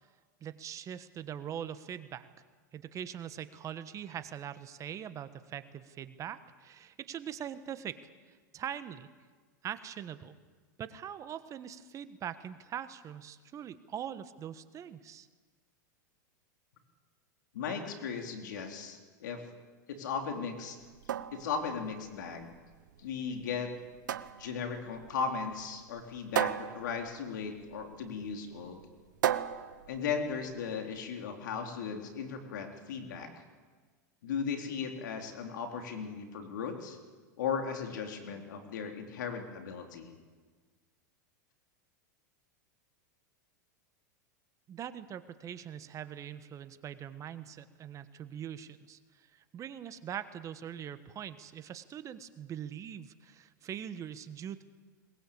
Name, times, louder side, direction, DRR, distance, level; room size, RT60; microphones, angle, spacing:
voice 1, 0.4-2.3 2.7-8.0 8.3-9.1 9.6-10.3 10.8-15.3 44.7-54.6, right 9 dB, 30° right, 12 dB, 1.3 m, -42 dB
voice 2, 17.5-19.4 19.9-20.8 21.3-22.5 23.0-23.7 24.4-28.8 29.9-33.3 34.2-37.0 37.4-40.1, left 6 dB, 75° left, 4 dB, 3.7 m, -37 dB
sound 1, 20.8-30.8, right 10 dB, 85° right, 0.9 m, -37 dB
21.5 x 20.5 x 8.6 m, 1.4 s
hypercardioid pair, 110°, 10 cm